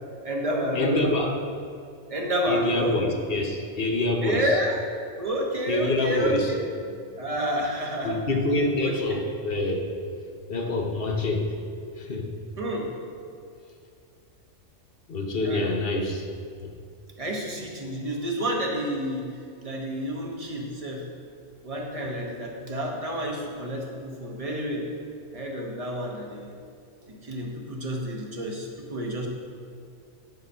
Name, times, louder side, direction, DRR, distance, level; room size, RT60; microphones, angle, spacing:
voice 1, 0.2-1.1 2.1-3.0 4.2-4.8 5.2-6.6 7.2-8.2 8.8-9.2 12.6-13.0 15.4-15.6 17.2-21.1 21.6-24.9 25.3-26.5 27.1-29.3, equal, 30° right, -1 dB, 1.2 m, -29 dB
voice 2, 0.7-1.3 2.5-4.5 5.7-6.5 8.0-9.9 10.5-11.5 11.9-12.3 15.1-16.2 16.6-16.7, left 2 dB, 50° left, 3 dB, 1.1 m, -26 dB
10.5 x 4.4 x 5.5 m, 2.4 s
omnidirectional pair, 1.3 m